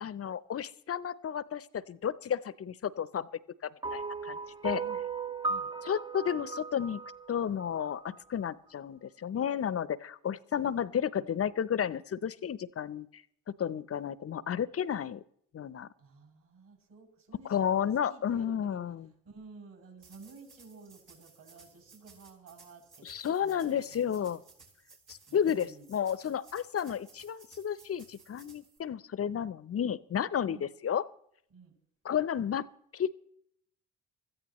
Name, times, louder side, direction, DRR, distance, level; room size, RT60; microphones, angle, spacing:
voice 1, 0.0-3.3 3.6-4.4 4.6-4.8 5.8-7.0 7.3-13.2 13.5-15.2 15.5-15.9 17.4-19.1 23.0-24.4 25.1-30.6 30.8-31.0 32.0-33.1, left 8 dB, 35° left, 19 dB, 0.7 m, -32 dB
sound 1, 3.8-8.2, right 4 dB, 10° right, 0.5 m, -37 dB
voice 2, 16.0-18.8 19.2-24.4 25.3-25.9 30.5-30.7 31.5-31.7, right 4 dB, 55° right, 1 dB, 6.9 m, -53 dB
sound 2, 20.0-28.8, right 4 dB, 85° right, 4.2 m, -58 dB
24.0 x 14.0 x 3.1 m, 0.70 s
hypercardioid pair, 55°, 43 cm